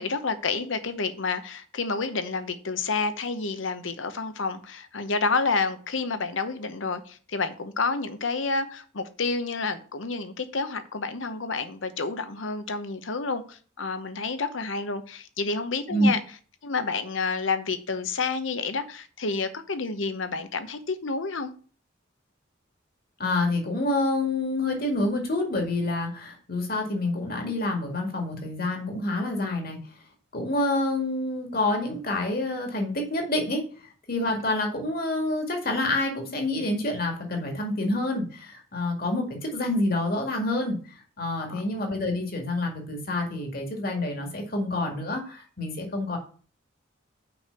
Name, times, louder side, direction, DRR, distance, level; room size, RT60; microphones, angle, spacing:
voice 1, 0.0-16.2 16.6-21.5 34.2-34.4 41.5-41.6, left 4 dB, 75° left, 0.9 m, -29 dB
voice 2, 23.2-29.8 30.3-33.6 34.1-40.8 41.2-46.2, left 2 dB, 50° left, 2.1 m, -27 dB
6.0 x 5.2 x 6.8 m
head